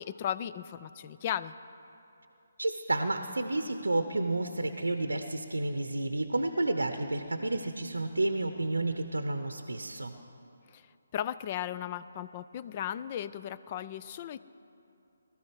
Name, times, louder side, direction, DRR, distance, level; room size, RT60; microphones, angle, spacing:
voice 1, 0.0-1.5 10.7-14.4, left 10 dB, 30° left, 15 dB, 0.4 m, -36 dB
voice 2, 2.6-10.1, right 2 dB, 80° right, 8 dB, 0.7 m, -31 dB
19.0 x 13.5 x 4.7 m, 2.8 s
figure-of-eight pair, 145°, 0 cm